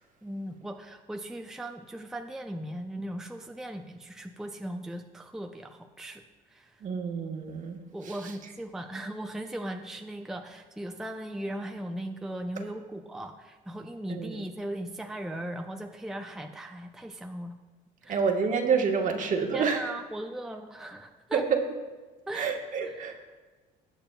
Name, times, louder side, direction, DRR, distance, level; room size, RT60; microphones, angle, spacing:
voice 1, 0.2-6.2 6.5-6.8 7.9-17.6 18.0-18.2 19.5-21.4 22.3-22.5 22.8-23.0, right 1 dB, 5° right, 4 dB, 0.5 m, -38 dB
voice 2, 6.8-8.3 14.1-14.4 18.1-19.9 21.3-21.6 22.3-23.2, right 5 dB, 50° right, 3 dB, 1.3 m, -28 dB
18.5 x 7.4 x 2.3 m, 1.3 s
cardioid pair, 110°, 17 cm